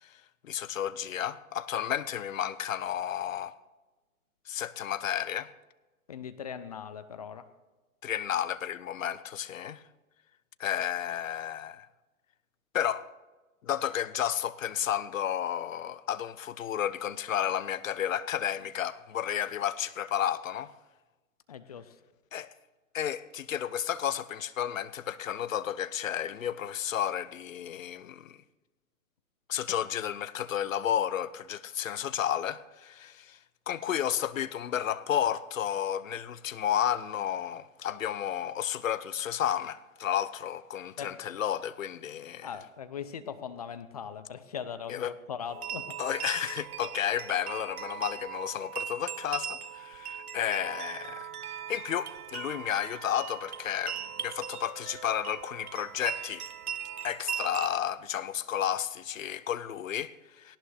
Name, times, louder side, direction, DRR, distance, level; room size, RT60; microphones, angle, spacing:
voice 1, 0.0-3.5 4.5-5.5 8.0-9.8 10.6-11.9 12.7-13.1 13.6-20.7 22.3-22.5 22.9-28.4 29.5-33.4 33.7-42.5 44.9-45.1 46.0-56.4 57.0-60.6, left 10 dB, 60° left, 0.8 m, -32 dB
voice 2, 6.1-7.5 21.5-22.0 41.0-41.2 42.4-46.0, left 7 dB, 25° left, 0.5 m, -40 dB
sound 1, 45.5-57.7, right 8 dB, 80° right, 1.0 m, -39 dB
19.0 x 17.5 x 3.4 m
hypercardioid pair, 140°, 44 cm